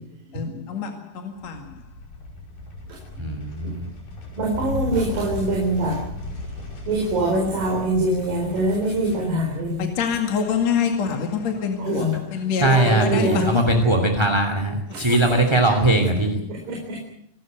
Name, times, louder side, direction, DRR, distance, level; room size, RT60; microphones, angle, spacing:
voice 1, 0.3-1.6 9.8-13.7 15.3-15.4, left 6 dB, 55° left, 3.2 m, -26 dB
sound 1, 1.4-12.0, left 2 dB, 90° left, 7.0 m, -36 dB
voice 2, 3.2-3.8 12.6-16.4, right 1 dB, 10° right, 2.0 m, -20 dB
voice 3, 4.4-6.0 6.9-9.9 11.8-12.1 12.6-13.6 14.9-15.1 16.5-17.0, right 1 dB, 90° right, 5.8 m, -24 dB
26.5 x 13.0 x 9.3 m
omnidirectional pair, 3.9 m